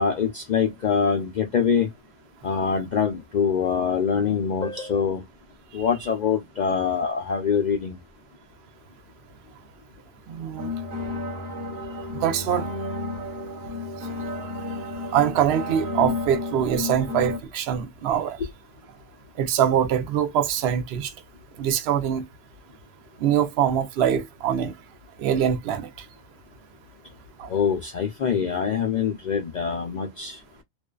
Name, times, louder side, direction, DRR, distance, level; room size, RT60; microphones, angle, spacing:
voice 1, 0.0-1.9 2.4-5.2 5.7-8.0 27.5-30.4, left 6 dB, 80° left, 0.4 m, -24 dB
voice 2, 10.3-10.7 12.2-12.6 15.1-18.4 19.4-21.1 21.6-22.2 23.2-24.7 25.2-25.9 27.4-27.5, right 9 dB, 60° right, 0.7 m, -23 dB
sound 1, 10.6-17.4, left 2 dB, 40° right, 1.1 m, -32 dB
2.5 x 2.3 x 2.2 m
omnidirectional pair, 1.3 m